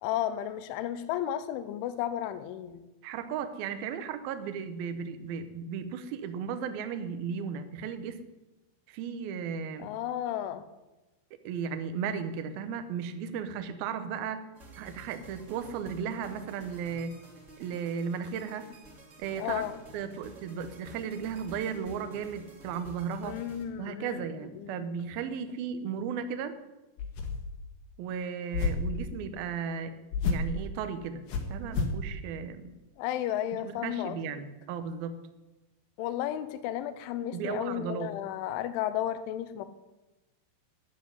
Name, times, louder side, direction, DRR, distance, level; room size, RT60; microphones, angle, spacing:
voice 1, 0.0-2.9 9.8-10.6 19.4-19.8 23.2-24.2 24.5-24.8 33.0-34.2 36.0-39.7, left 11 dB, 85° left, 12 dB, 3.2 m, -33 dB
voice 2, 3.0-8.2 8.9-9.9 11.4-14.5 14.8-17.2 17.6-18.7 19.2-19.6 19.9-23.4 23.8-26.6 28.0-29.9 30.2-31.2 31.5-32.7 33.6-35.2 37.3-38.1, right 7 dB, 80° right, 10 dB, 2.2 m, -35 dB
sound 1, 14.5-23.6, right 1 dB, 25° right, 2.0 m, -51 dB
sound 2, 27.0-27.6 28.5-29.0 30.1-30.6 31.3-32.0, left 4 dB, 65° left, 3.5 m, -30 dB
12.0 x 8.0 x 9.7 m, 1.1 s
omnidirectional pair, 5.5 m